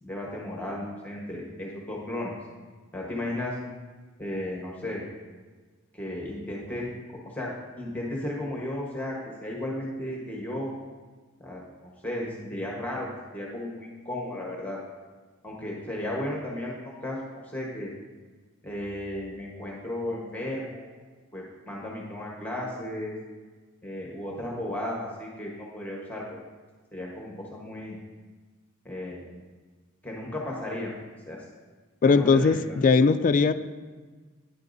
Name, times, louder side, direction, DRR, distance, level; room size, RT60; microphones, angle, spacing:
voice 1, 0.0-2.3 2.9-3.5 4.2-5.0 5.9-7.5 7.8-10.7 11.4-11.6 12.0-14.8 15.4-17.9 18.6-20.9 21.3-23.1 23.8-26.2 26.9-28.0 28.8-29.3 30.0-30.9 31.3-31.4 32.0-32.8, left 1 dB, 10° left, -3 dB, 1.1 m, -34 dB
voice 2, 32.0-33.5, left 4 dB, 40° left, 11 dB, 0.3 m, -20 dB
9.6 x 8.2 x 2.6 m, 1.4 s
head